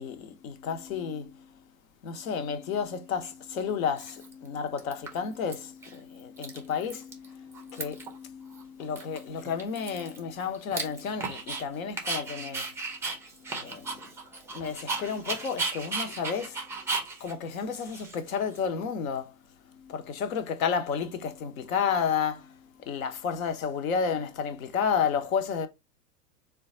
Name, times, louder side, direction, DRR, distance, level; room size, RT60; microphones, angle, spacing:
voice 1, 0.0-1.5 2.0-12.8 13.4-14.0 14.5-16.7 17.2-19.3 19.7-25.7, left 6 dB, 60° left, 0.9 m, -32 dB
Dog, 3.2-3.3 4.0-4.5 4.8-5.5 5.8-5.9 6.2-7.3 7.5-8.2 8.5-8.6 9.0-11.6 12.0-18.6, right 3 dB, 5° right, 0.4 m, -35 dB
3.8 x 2.3 x 3.7 m
figure-of-eight pair, 100°, 47 cm